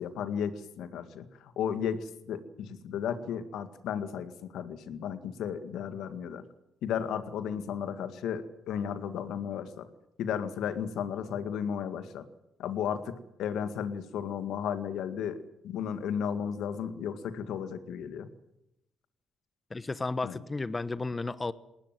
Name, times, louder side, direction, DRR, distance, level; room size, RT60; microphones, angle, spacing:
voice 1, 0.0-6.4 6.8-9.9 10.2-12.3 12.6-18.3 20.2-20.4, left 8 dB, 85° left, 10 dB, 2.0 m, -34 dB
voice 2, 19.7-21.5, left 3 dB, 25° left, 15 dB, 1.2 m, -33 dB
20.0 x 19.0 x 9.2 m, 0.84 s
cardioid pair, 90°, 0 cm